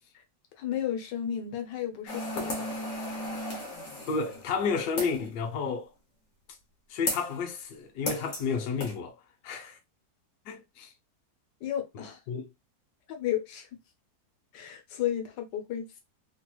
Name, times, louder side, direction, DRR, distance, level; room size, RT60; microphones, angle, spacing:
voice 1, 0.6-2.7 11.6-12.2 13.1-13.7 14.5-15.9, left 10 dB, 90° left, 1.4 m, -33 dB
sound 1, 2.1-5.3 7.1-7.4 8.1-8.5 8.8-9.0, left 1 dB, 55° left, 1.4 m, -35 dB
voice 2, 4.1-5.9 6.9-9.2 9.4-9.8 10.5-10.9 11.9-12.5, left 5 dB, 70° left, 1.3 m, -31 dB
3.3 x 2.9 x 2.2 m
omnidirectional pair, 1.8 m